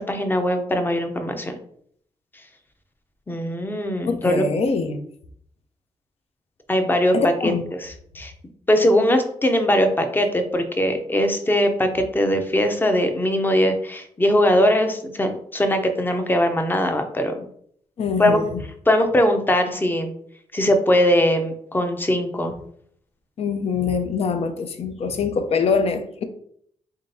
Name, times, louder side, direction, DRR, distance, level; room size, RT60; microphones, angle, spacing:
voice 1, 0.0-1.6 3.3-4.4 6.7-7.5 7.8-8.3 8.7-17.4 18.2-18.4 18.9-20.1 20.5-22.5, equal, 15° left, 0.6 m, -20 dB
voice 2, 4.0-5.0 7.1-7.6 18.0-18.6 23.4-26.2, left 5 dB, 60° left, 0.6 m, -24 dB
3.7 x 3.4 x 2.7 m
cardioid pair, 75°, 12 cm